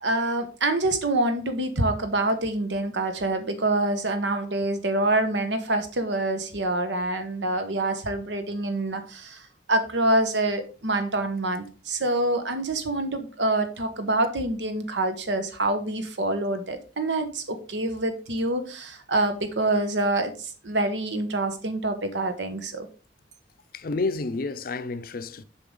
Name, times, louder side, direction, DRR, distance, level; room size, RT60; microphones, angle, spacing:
voice 1, 0.0-9.4 9.7-22.9, right 2 dB, 80° right, 1.2 m, -26 dB
voice 2, 23.7-25.4, left 3 dB, 50° left, 0.5 m, -30 dB
6.9 x 5.7 x 3.8 m
head